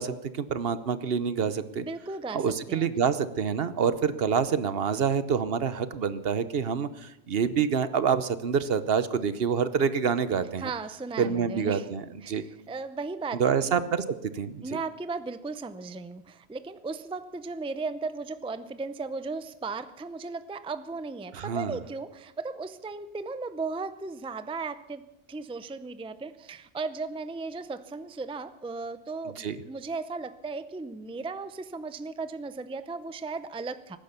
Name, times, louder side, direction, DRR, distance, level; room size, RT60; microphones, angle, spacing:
voice 1, 0.0-1.8 2.3-10.7 11.2-12.4 13.4-14.8 21.3-21.8 29.4-29.6, right 6 dB, 65° right, 13 dB, 1.1 m, -27 dB
voice 2, 1.8-2.9 10.6-11.9 12.2-13.8 14.6-34.0, right 4 dB, 5° right, 12 dB, 0.5 m, -36 dB
19.5 x 10.5 x 6.7 m, 0.91 s
omnidirectional pair, 1.1 m